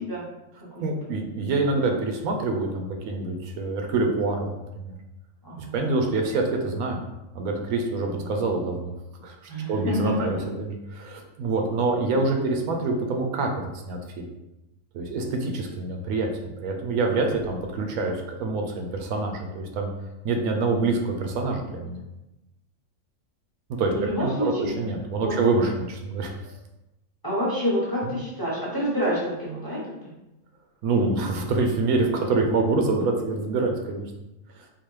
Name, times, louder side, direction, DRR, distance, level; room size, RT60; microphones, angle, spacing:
voice 1, 0.8-4.5 4.7-4.9 5.7-7.0 7.3-8.9 9.2-9.4 9.7-14.2 14.9-19.9 20.2-22.0 23.8-23.9 24.2-26.5 30.8-34.0 34.6-34.7, right 3 dB, 90° right, 2 dB, 1.1 m, -26 dB
voice 2, 5.4-5.8 8.0-8.3 9.5-10.4 23.9-24.7 25.2-25.4 27.2-30.1, equal, 20° left, -7 dB, 0.9 m, -28 dB
3.7 x 2.4 x 3.1 m, 0.96 s
omnidirectional pair, 1.5 m